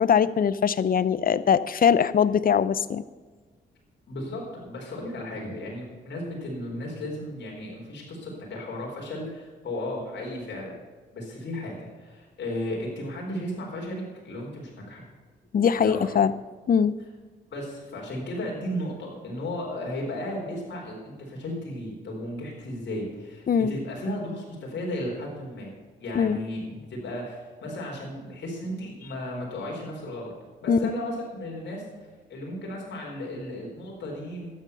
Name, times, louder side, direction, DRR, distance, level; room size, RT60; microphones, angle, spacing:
voice 1, 0.0-3.0 15.5-16.3 16.7-17.0 23.5-23.8 26.1-26.4 30.7-30.9, left 7 dB, 50° left, 17 dB, 0.7 m, -22 dB
voice 2, 4.1-10.7 11.1-15.0 15.8-16.1 17.5-25.7 26.0-30.3 30.6-31.8 32.3-34.5, left 1 dB, 65° left, -2 dB, 4.1 m, -34 dB
12.5 x 9.3 x 6.9 m, 1.4 s
supercardioid pair, 60°, 19 cm